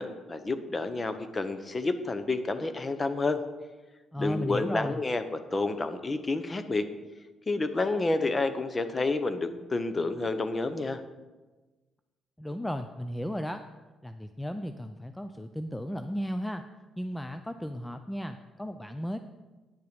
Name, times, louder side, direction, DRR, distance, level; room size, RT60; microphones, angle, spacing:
voice 1, 0.0-3.4 4.2-5.2 5.5-6.9 7.5-11.0, left 3 dB, 25° left, 10 dB, 0.8 m, -29 dB
voice 2, 4.1-5.0 12.4-13.6 14.0-16.6 17.0-19.2, equal, 10° left, 8 dB, 0.4 m, -35 dB
9.9 x 6.8 x 5.2 m, 1.2 s
cardioid pair, 90°, 0 cm